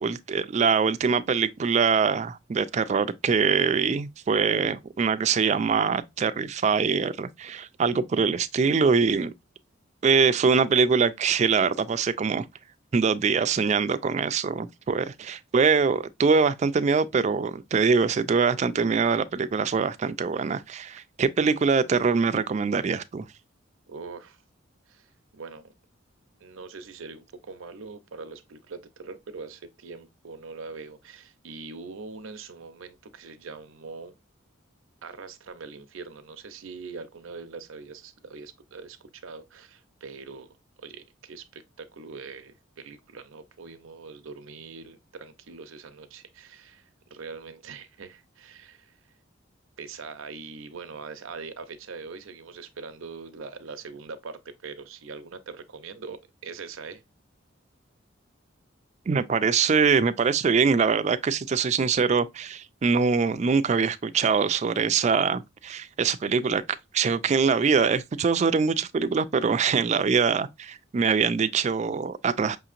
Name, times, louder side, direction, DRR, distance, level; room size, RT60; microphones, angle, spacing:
voice 1, 0.0-9.3 10.0-12.5 12.9-23.2 59.1-66.6 66.9-72.6, right 5 dB, 35° right, 0.3 m, -23 dB
voice 2, 23.9-24.4 24.9-25.7 26.4-34.2 35.0-40.5 40.8-49.0 49.8-57.0, right 4 dB, 85° right, 0.6 m, -42 dB
5.7 x 2.8 x 2.4 m
head